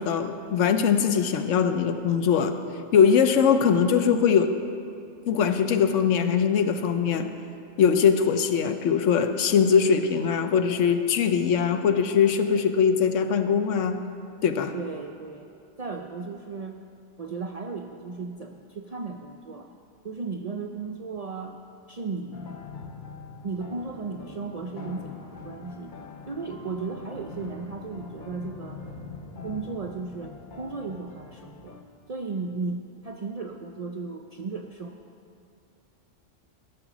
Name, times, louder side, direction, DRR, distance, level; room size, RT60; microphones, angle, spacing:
voice 1, 0.0-2.6 2.9-4.5 5.3-7.3 7.8-14.0 14.4-14.7, left 7 dB, 90° left, 9 dB, 1.0 m, -21 dB
voice 2, 14.7-15.5 15.8-16.8 17.2-19.7 20.0-21.6 21.9-22.6 23.4-25.9 26.3-28.8 29.4-31.8 32.1-34.9, right 4 dB, 60° right, 3 dB, 0.4 m, -35 dB
sound 1, 22.3-31.8, left 4 dB, 45° left, 0.9 m, -43 dB
14.0 x 6.9 x 6.0 m, 2.6 s
omnidirectional pair, 1.3 m